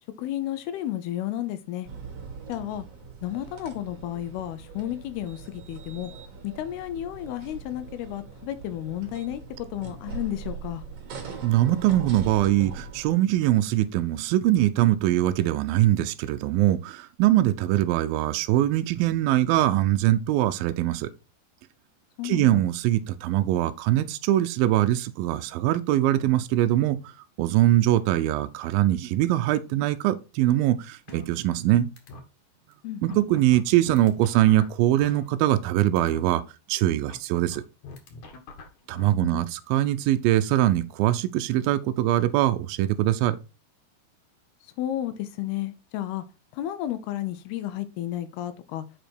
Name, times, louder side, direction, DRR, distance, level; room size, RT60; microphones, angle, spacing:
voice 1, 0.2-1.9 2.5-2.9 3.2-6.1 6.4-10.8 22.2-22.7 32.8-33.2 38.9-39.1 39.3-39.4 44.8-46.2 46.5-48.8, left 12 dB, 80° left, 2.6 m, -32 dB
sound 1, 1.8-13.1, right 4 dB, 50° right, 2.2 m, -41 dB
voice 2, 11.4-21.1 22.2-27.0 27.4-31.9 33.0-36.4 36.7-37.6 38.9-43.4, right 14 dB, 80° right, 2.1 m, -22 dB
sound 2, 31.1-31.7 32.0-32.2 32.7-32.8 33.1-35.7 36.0-36.2 37.1-39.1, left 3 dB, 55° left, 2.2 m, -43 dB
7.8 x 5.1 x 4.5 m
omnidirectional pair, 4.8 m